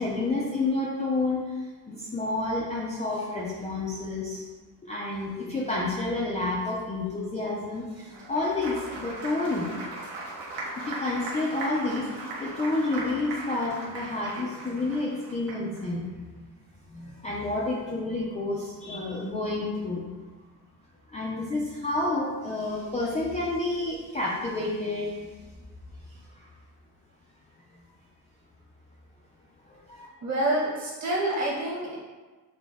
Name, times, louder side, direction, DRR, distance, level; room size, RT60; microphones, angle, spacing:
voice 1, 0.0-4.4 4.8-9.7 10.8-12.1 12.4-16.1 16.4-16.5 16.9-20.1 21.1-25.6 26.1-26.5 29.6-30.1, left 2 dB, 15° left, -5 dB, 0.4 m, -30 dB
Applause, 8.0-15.8, right 2 dB, 70° right, 1.1 m, -38 dB
voice 2, 30.2-32.0, right 1 dB, 40° right, -5 dB, 1.3 m, -27 dB
6.2 x 2.1 x 3.4 m, 1.3 s
cardioid pair, 155°, 42 cm